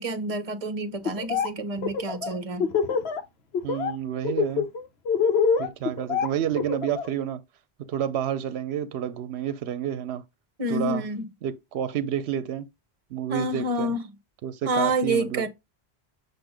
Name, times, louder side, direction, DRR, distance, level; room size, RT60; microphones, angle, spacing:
voice 1, 0.0-2.7 10.6-11.2 13.3-14.0 14.7-15.5, right 1 dB, 35° right, 0.9 m, -28 dB
Laughter, 1.0-1.5 1.8-3.2 3.5-3.9 4.2-7.1, left 6 dB, 75° left, 1.0 m, -25 dB
voice 2, 3.6-4.7 5.6-7.4 7.9-10.2 10.7-11.0 11.4-12.7 13.1-13.9 14.4-15.5, right 9 dB, 80° right, 0.8 m, -29 dB
7.7 x 2.6 x 4.9 m
omnidirectional pair, 1.1 m